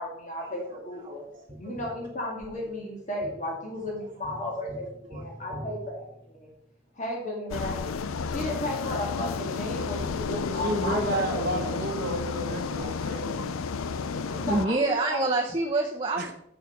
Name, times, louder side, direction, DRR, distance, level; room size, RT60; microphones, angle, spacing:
voice 1, 0.0-1.3 1.6-4.9 5.1-6.5 7.0-7.8 8.3-11.8 14.5-15.3, left 1 dB, 35° left, -2 dB, 2.0 m, -34 dB
voice 2, 1.0-1.5 4.3-4.7 5.1-5.2 9.8-9.9 10.3-10.4 12.8-12.9 14.0-16.3, right 2 dB, 25° right, 0 dB, 0.7 m, -29 dB
Tap, 1.5-6.8 9.4-9.5, equal, 5° left, 1.3 m, -46 dB
sound 1, 7.5-14.7, left 5 dB, 90° left, 0.5 m, -32 dB
voice 3, 10.6-13.6 16.2-16.3, right 1 dB, 45° right, -1 dB, 0.9 m, -31 dB
7.6 x 7.0 x 5.3 m, 0.75 s
head